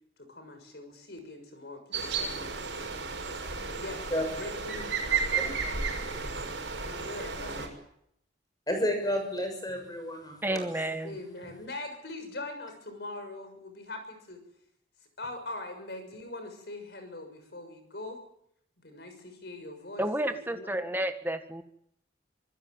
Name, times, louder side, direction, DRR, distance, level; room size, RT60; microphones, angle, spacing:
voice 1, 0.2-3.0 3.6-6.2 6.8-7.7 11.0-14.4 15.2-18.2 18.8-20.8, left 2 dB, 60° left, 7 dB, 6.4 m, -42 dB
sound 1, 1.9-7.7, right 5 dB, 85° right, 6.2 m, -33 dB
voice 2, 8.7-10.7, left 1 dB, 20° left, 5 dB, 6.7 m, -31 dB
voice 3, 10.4-11.2 20.0-21.6, right 1 dB, 10° right, 7 dB, 1.6 m, -31 dB
25.5 x 15.0 x 9.6 m, 0.74 s
head